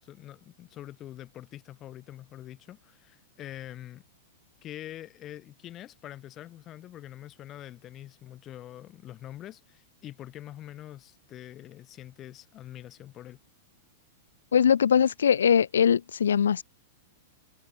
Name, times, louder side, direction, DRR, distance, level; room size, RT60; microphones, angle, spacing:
voice 1, 0.0-4.0 4.6-13.4, left 13 dB, 35° left, 6.3 m, -44 dB
voice 2, 14.5-16.6, left 8 dB, 85° left, 0.4 m, -21 dB
hypercardioid pair, 115°, 0 cm